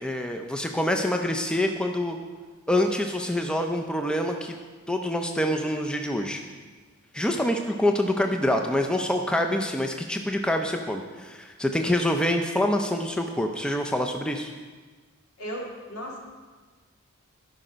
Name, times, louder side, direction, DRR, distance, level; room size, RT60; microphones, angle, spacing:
voice 1, 0.0-2.2 2.7-4.5 4.9-6.4 7.1-14.5, left 1 dB, 5° left, 4 dB, 0.4 m, -26 dB
voice 2, 15.4-16.2, equal, 80° left, -2 dB, 2.0 m, -35 dB
12.0 x 5.5 x 5.0 m, 1.4 s
head